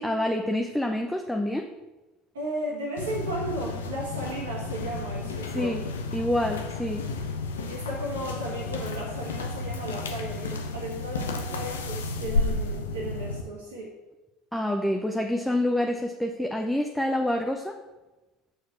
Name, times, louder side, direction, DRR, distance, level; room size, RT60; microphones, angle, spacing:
voice 1, 0.0-1.7 5.5-5.8 6.1-7.0 14.5-17.8, left 1 dB, 5° left, 3 dB, 0.7 m, -27 dB
voice 2, 2.3-5.8 7.7-13.9, right 1 dB, 85° right, -5 dB, 1.5 m, -35 dB
sound 1, 3.0-13.4, left 3 dB, 85° left, 0.7 m, -32 dB
6.6 x 4.6 x 6.8 m, 1.1 s
hypercardioid pair, 70°, 0 cm